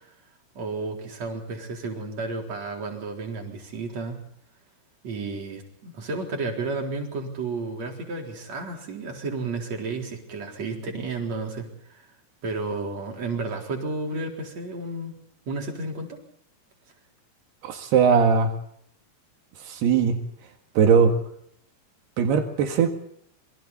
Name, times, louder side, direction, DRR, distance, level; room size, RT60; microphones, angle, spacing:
voice 1, 0.5-4.2 5.0-12.1 12.4-15.1 15.5-16.2, right 3 dB, 40° right, 5.0 m, -32 dB
voice 2, 17.6-18.5 19.7-20.2 20.8-21.1 22.2-22.9, right 6 dB, 80° right, 4.0 m, -19 dB
27.5 x 24.5 x 4.3 m
omnidirectional pair, 4.6 m